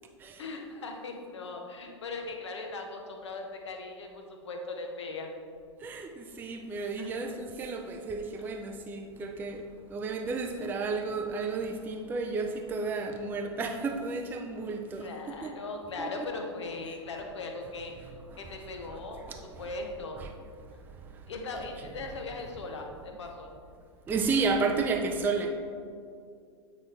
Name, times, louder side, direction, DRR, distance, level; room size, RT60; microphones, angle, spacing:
voice 1, 0.4-5.3 7.0-7.2 14.6-14.7 15.0-17.9 18.4-19.2 19.6-20.2 21.3-23.5, left 3 dB, 70° left, 3 dB, 1.0 m, -39 dB
voice 2, 5.8-15.5 16.0-16.3 18.0-18.5 18.9-19.0 19.3-19.7 20.2-20.3 20.6-21.3 24.1-25.5, right 4 dB, 10° right, 3 dB, 0.4 m, -33 dB
8.5 x 4.2 x 3.2 m, 2.2 s
figure-of-eight pair, 100°, 16 cm